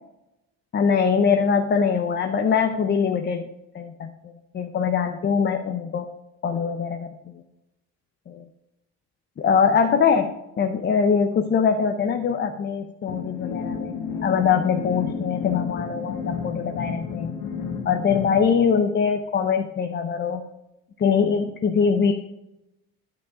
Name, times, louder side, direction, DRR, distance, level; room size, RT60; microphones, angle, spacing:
voice 1, 0.7-3.5 3.7-4.1 4.5-6.1 6.4-7.4 8.3-8.4 9.4-17.4 17.8-20.4 21.0-22.1, left 6 dB, 30° left, 5 dB, 0.7 m, -22 dB
sound 1, 13.1-18.4, left 5 dB, 65° left, 1.9 m, -32 dB
10.0 x 6.0 x 4.9 m, 0.92 s
cardioid pair, 115°, 35 cm